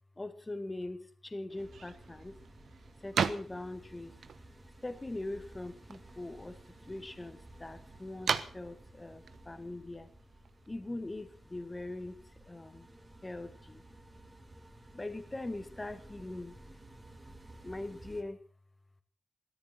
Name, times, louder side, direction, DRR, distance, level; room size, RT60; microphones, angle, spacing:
voice 1, 0.2-2.3 3.0-4.1 4.8-6.6 6.9-10.1 10.7-12.9 13.2-13.8 14.9-16.5 17.6-18.4, left 2 dB, 20° left, 9 dB, 1.8 m, -42 dB
sound 1, 1.5-10.7, right 6 dB, 75° right, 1.2 m, -40 dB
sound 2, 1.6-18.2, right 1 dB, 20° right, 3.0 m, -55 dB
17.0 x 14.0 x 6.0 m, 0.44 s
wide cardioid pair, 100°, 0 cm